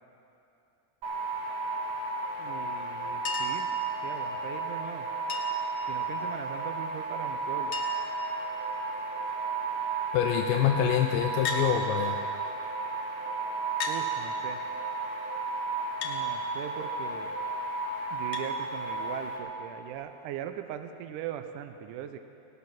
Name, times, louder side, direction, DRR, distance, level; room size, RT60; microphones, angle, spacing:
sound 1, 1.0-19.4, right 3 dB, 60° right, 3.3 m, -33 dB
voice 1, 2.4-3.7 4.0-5.1 5.9-7.8 13.9-14.6 16.0-17.4 18.1-22.2, right 10 dB, 75° right, 8 dB, 2.1 m, -40 dB
Chink clink, 3.3-3.7 5.3-5.7 7.1-7.2 7.4-7.5 7.7-8.2 8.9-9.3 11.4-11.7 12.8-12.9 13.8-14.0 16.0-16.2 18.3-18.5 19.9-20.0, left 6 dB, 60° left, 1.9 m, -35 dB
voice 2, 10.1-12.2, left 10 dB, 85° left, 4 dB, 2.4 m, -26 dB
18.0 x 13.0 x 5.9 m, 2.7 s
omnidirectional pair, 4.0 m